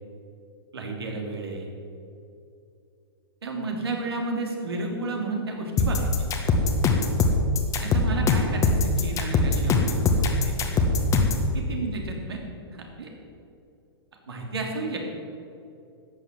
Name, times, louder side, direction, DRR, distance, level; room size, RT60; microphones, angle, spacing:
voice 1, 0.7-1.7 3.4-6.1 7.8-10.9 11.5-12.4 12.7-13.1 14.3-15.0, right 3 dB, 70° right, 1 dB, 3.0 m, -32 dB
sound 1, 5.8-11.5, left 3 dB, 25° left, 1.6 m, -21 dB
13.5 x 9.4 x 7.4 m, 2.6 s
figure-of-eight pair, 105°, 14 cm